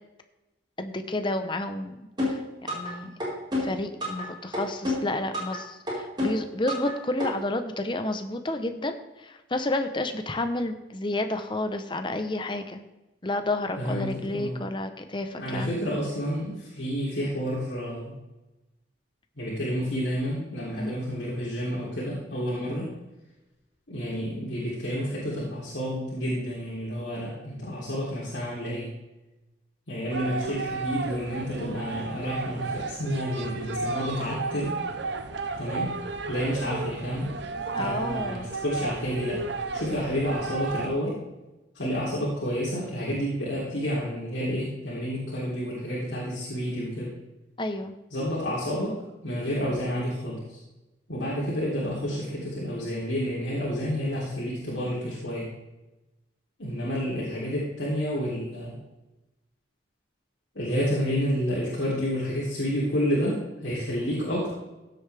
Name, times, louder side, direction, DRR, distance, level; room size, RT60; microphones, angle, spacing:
voice 1, 0.8-3.1 3.6-12.8 13.2-15.8 20.8-21.0 37.7-38.5 47.6-47.9, left 2 dB, 25° left, 7 dB, 0.9 m, -31 dB
sound 1, 2.2-2.9 3.2-4.2 4.5-5.6 5.9-6.9 7.2-7.3, left 2 dB, 25° right, 4.6 m, -29 dB
voice 2, 13.8-14.6 15.3-18.1 19.4-22.9 23.9-28.9 29.9-34.7 35.6-35.9 36.3-37.3 37.8-39.4 39.7-41.2 41.8-47.1 48.1-49.0 49.2-50.6 51.1-55.5 56.6-58.7 60.6-64.5, equal, 70° left, -8 dB, 3.3 m, -30 dB
sound 2, 30.1-40.9, right 3 dB, 65° right, 0.9 m, -33 dB
15.5 x 8.2 x 3.5 m, 1.0 s
head